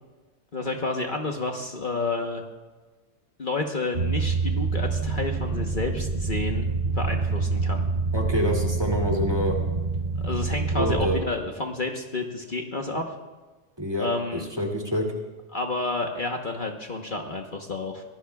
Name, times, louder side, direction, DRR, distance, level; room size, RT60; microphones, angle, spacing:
voice 1, 0.5-2.4 3.4-7.8 10.2-13.2 14.0-14.5 15.5-18.0, left 3 dB, 45° left, 2 dB, 1.2 m, -30 dB
sound 1, 3.9-11.2, right 4 dB, 45° right, 1.0 m, -26 dB
voice 2, 8.1-9.6 10.7-11.2 13.8-14.1 14.6-15.1, equal, 20° right, 0 dB, 2.5 m, -26 dB
24.0 x 17.5 x 2.4 m, 1.3 s
omnidirectional pair, 1.2 m